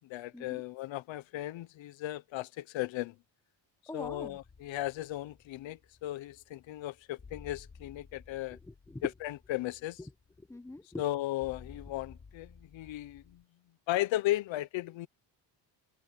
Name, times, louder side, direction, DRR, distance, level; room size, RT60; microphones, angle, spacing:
voice 1, 0.1-3.1 3.9-8.6 9.0-10.0 11.0-13.4 13.9-15.1, left 15 dB, 80° left, 1.0 m, -36 dB
voice 2, 3.9-4.4 8.5-9.1 10.0-10.1 10.4-11.0, left 2 dB, 5° left, 1.2 m, -42 dB
sound 1, 4.0-13.4, left 5 dB, 30° left, 5.6 m, -56 dB
cardioid pair, 120°, 45 cm